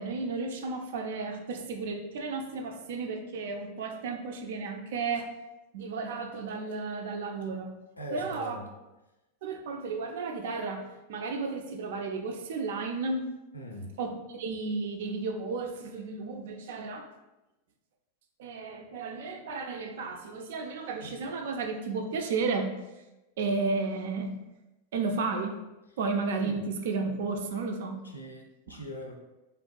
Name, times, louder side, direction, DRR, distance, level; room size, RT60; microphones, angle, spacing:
voice 1, 0.0-5.3 5.7-7.7 8.1-8.6 9.4-13.3 14.0-17.1 18.4-22.7 23.4-24.3 24.9-25.6 26.0-28.0, right 4 dB, 55° right, 4 dB, 0.3 m, -33 dB
voice 2, 8.0-8.6 13.5-13.9 26.4-26.6 28.0-29.1, equal, 80° left, 2 dB, 0.4 m, -41 dB
3.5 x 2.3 x 2.2 m, 1.0 s
figure-of-eight pair, 90°, 0 cm